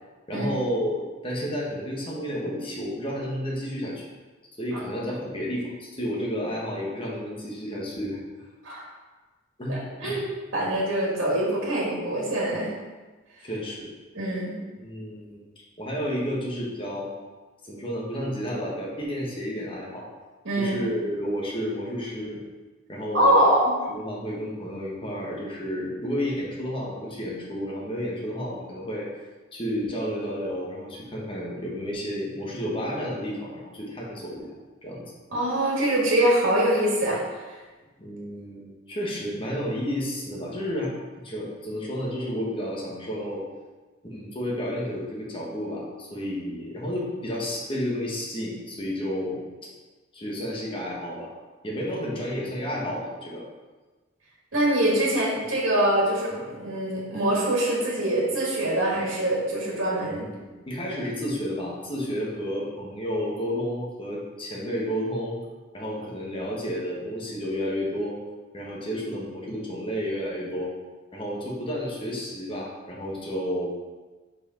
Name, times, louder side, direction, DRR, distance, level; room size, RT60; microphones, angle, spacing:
voice 1, 0.3-4.1 4.6-8.2 9.6-10.2 13.4-13.9 14.8-15.4 15.8-17.1 17.6-20.1 20.6-22.4 22.9-23.4 23.9-29.1 29.5-34.5 34.8-35.0 38.0-40.9 41.2-43.4 44.0-49.4 50.1-51.3 51.6-53.4 60.2-65.4 65.7-68.2 68.5-70.7 71.1-73.7, equal, 25° left, -4 dB, 1.3 m, -31 dB
voice 2, 4.7-5.0 8.6-8.8 9.7-10.2 10.5-12.7 14.1-14.6 20.4-20.8 23.1-23.7 35.3-37.2 37.5-37.6 54.5-60.3, right 1 dB, 70° right, -5 dB, 1.9 m, -24 dB
5.0 x 4.9 x 4.4 m, 1.3 s
head